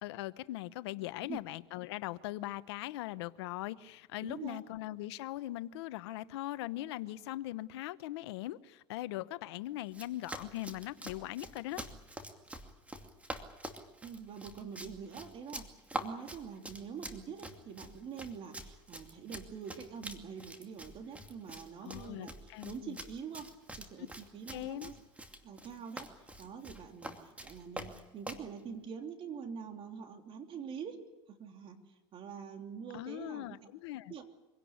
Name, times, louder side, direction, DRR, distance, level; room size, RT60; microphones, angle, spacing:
voice 1, 0.0-11.9 21.8-23.0 24.5-24.9 32.9-34.1, left 16 dB, 75° left, 15 dB, 0.9 m, -40 dB
voice 2, 1.0-1.4 4.2-4.6 14.0-22.3 22.6-23.5 23.8-24.9 25.4-31.0 31.3-31.8 32.1-33.6 34.1-34.3, right 6 dB, 40° right, 5 dB, 3.2 m, -45 dB
Run, 9.9-28.5, right 1 dB, 10° right, 2.5 m, -46 dB
25.0 x 17.5 x 9.5 m, 1.0 s
supercardioid pair, 110°, 14 cm